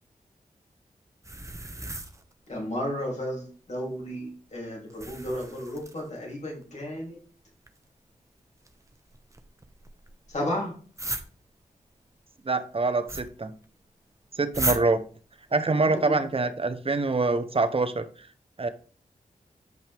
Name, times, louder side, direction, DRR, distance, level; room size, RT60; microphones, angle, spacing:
sound 1, 1.2-2.5 4.9-6.3 7.5-7.8 8.7-10.4 11.0-11.3 13.1-13.3 13.6-13.7 14.5-14.8, right 2 dB, 20° right, 1.1 m, -34 dB
voice 1, 2.5-7.2 10.3-10.8 15.9-16.1, left 1 dB, 50° left, -2 dB, 3.2 m, -33 dB
voice 2, 12.4-13.5 14.4-15.0 15.5-18.0 18.6-18.7, right 3 dB, 40° right, 10 dB, 0.9 m, -25 dB
9.3 x 5.5 x 3.5 m, 0.41 s
cardioid pair, 60°, 15 cm